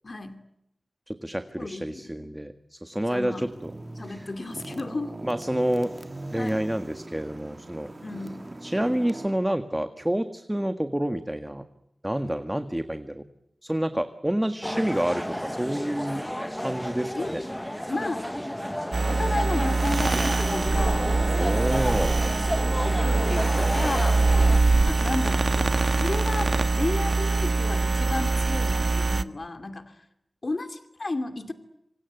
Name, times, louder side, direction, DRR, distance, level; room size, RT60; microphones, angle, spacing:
voice 1, 0.0-0.4 1.6-2.3 3.1-3.5 4.0-5.2 6.4-6.6 8.0-8.4 14.7-14.8 17.1-17.5 17.9-18.6 19.1-21.2 22.2-24.3 24.9-30.0 30.4-31.5, left 2 dB, 55° left, 8 dB, 2.5 m, -33 dB
voice 2, 1.1-3.5 4.1-4.3 5.2-5.9 6.3-7.9 8.6-11.6 12.0-13.2 13.6-16.2 16.6-17.4 21.4-22.2, right 1 dB, 10° right, 8 dB, 1.7 m, -28 dB
sound 1, 2.9-9.3, right 2 dB, 35° right, 1.6 m, -41 dB
sound 2, 14.6-24.6, equal, 5° left, 1.1 m, -32 dB
sound 3, 18.9-29.2, right 3 dB, 65° right, 1.3 m, -23 dB
26.5 x 26.5 x 8.1 m, 0.81 s
wide cardioid pair, 70°, 0 cm